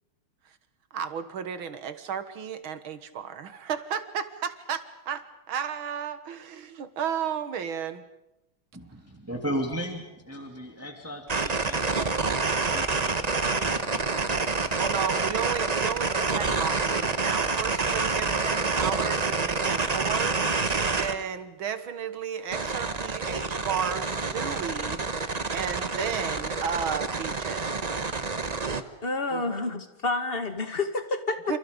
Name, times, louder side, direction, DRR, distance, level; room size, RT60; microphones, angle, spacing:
voice 1, 0.9-8.0 14.8-27.9 29.3-29.6 31.5-31.6, right 8 dB, 70° right, 11 dB, 2.2 m, -33 dB
voice 2, 8.7-14.1, equal, 5° right, 3 dB, 2.6 m, -37 dB
sound 1, 11.3-21.2 22.5-28.8, right 4 dB, 30° right, 0.8 m, -27 dB
voice 3, 29.0-31.6, left 3 dB, 25° left, 8 dB, 2.0 m, -29 dB
28.5 x 28.5 x 5.3 m, 0.88 s
omnidirectional pair, 2.4 m